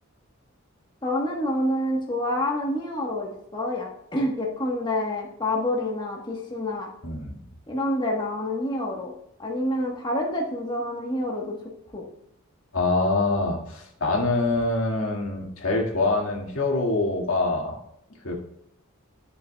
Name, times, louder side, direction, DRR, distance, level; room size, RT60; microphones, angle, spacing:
voice 1, 1.0-6.9 7.7-9.1 9.4-11.5 11.9-12.0, left 1 dB, 20° left, -1 dB, 1.2 m, -27 dB
voice 2, 7.0-7.4 12.7-17.8 18.2-18.3, left 2 dB, 85° left, -1 dB, 2.0 m, -25 dB
11.0 x 6.7 x 2.3 m, 0.78 s
head